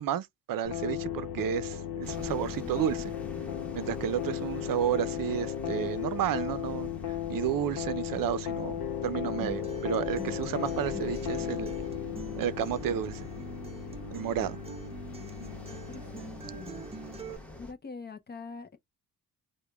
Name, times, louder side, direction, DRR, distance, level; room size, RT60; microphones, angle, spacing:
voice 1, 0.0-3.2 3.7-11.7 12.4-13.3 14.1-14.6, right 10 dB, 65° right, 0.6 m, -32 dB
sound 1, 0.6-17.4, left 10 dB, 85° left, 0.8 m, -36 dB
sound 2, 2.0-17.7, left 1 dB, 5° left, 1.1 m, -47 dB
Acoustic guitar, 9.4-17.4, right 3 dB, 15° right, 0.5 m, -45 dB
voice 2, 15.2-16.8 17.6-18.8, left 4 dB, 30° left, 0.5 m, -45 dB
4.8 x 2.2 x 2.2 m
cardioid pair, 125°, 36 cm